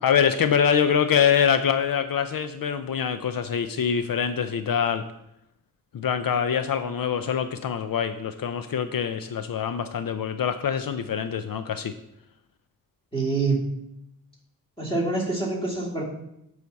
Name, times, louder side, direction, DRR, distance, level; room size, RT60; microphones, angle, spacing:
voice 1, 0.0-5.0 5.9-11.9, left 7 dB, 75° left, 10 dB, 0.5 m, -24 dB
voice 2, 13.1-13.6 14.8-16.0, right 3 dB, 15° left, -3 dB, 2.8 m, -25 dB
11.5 x 4.9 x 4.1 m, 0.82 s
wide cardioid pair, 80°, 34 cm